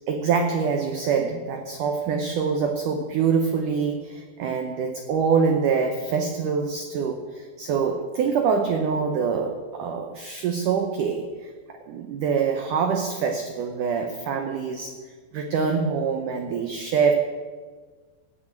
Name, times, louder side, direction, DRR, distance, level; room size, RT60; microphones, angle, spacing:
voice 1, 0.1-11.5 11.9-15.0 15.3-17.1, right 6 dB, 90° right, 4 dB, 1.8 m, -25 dB
17.0 x 6.2 x 9.0 m, 1.5 s
omnidirectional pair, 5.0 m